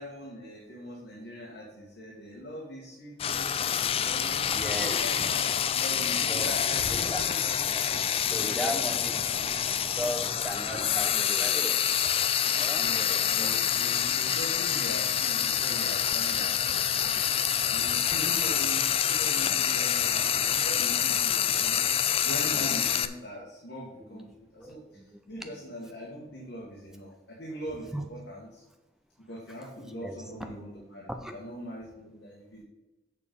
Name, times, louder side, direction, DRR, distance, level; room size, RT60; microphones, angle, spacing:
voice 1, 0.0-3.5 4.0-7.4 8.3-8.9 9.4-9.5 12.8-17.2 17.6-28.6 29.3-32.6, equal, 75° left, -5 dB, 1.9 m, -42 dB
Frying (food), 3.2-23.1, left 9 dB, 30° left, 0.3 m, -27 dB
voice 2, 4.5-5.3 6.3-7.2 7.7-7.8 8.2-9.2 10.0-11.8 12.5-13.5 22.5-22.6 24.0-25.2 25.5-25.6 27.9-28.0 29.8-30.2 31.1-31.4, equal, 5° right, 4 dB, 0.8 m, -37 dB
7.0 x 6.6 x 5.4 m, 1.0 s
head